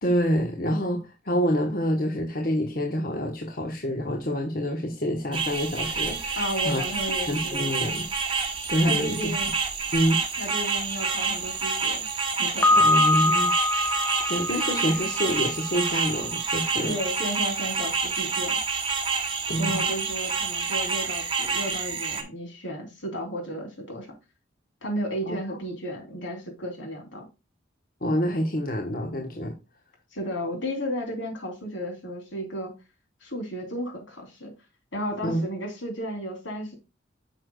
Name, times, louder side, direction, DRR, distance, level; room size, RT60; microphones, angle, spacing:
voice 1, 0.0-6.8 7.3-8.1 8.7-9.3 9.9-10.2 12.7-17.0 19.5-19.9 25.3-25.4 28.0-29.5 35.2-35.5, equal, 50° left, 1.1 m, -27 dB
sound 1, 5.3-22.2, right 5 dB, 25° right, 1.0 m, -28 dB
voice 2, 6.4-7.7 8.8-9.5 10.4-12.1 12.4-12.9 16.8-18.6 19.6-24.2 24.8-27.3 30.1-32.7 33.2-34.5 34.9-36.8, equal, 80° left, 3.1 m, -33 dB
Piano, 12.6-15.5, left 2 dB, 15° left, 0.9 m, -23 dB
8.5 x 6.4 x 2.3 m
head